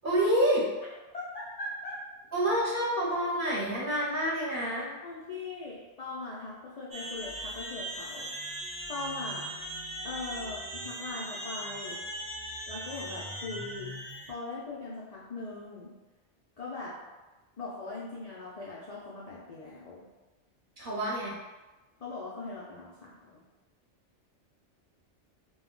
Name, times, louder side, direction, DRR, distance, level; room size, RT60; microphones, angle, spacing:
voice 1, 0.0-0.7 2.3-4.9 20.8-21.4, right 1 dB, 50° right, -6 dB, 0.8 m, -28 dB
voice 2, 1.1-2.0 5.0-8.3 8.9-9.5 10.0-12.0 12.7-13.9 14.3-15.9 16.6-16.9 17.6-20.1 22.0-23.4, left 3 dB, 65° left, -6 dB, 0.4 m, -40 dB
sound 1, 6.9-14.3, right 1 dB, 30° right, 0.4 m, -39 dB
2.2 x 2.1 x 3.6 m, 1.1 s
omnidirectional pair, 1.2 m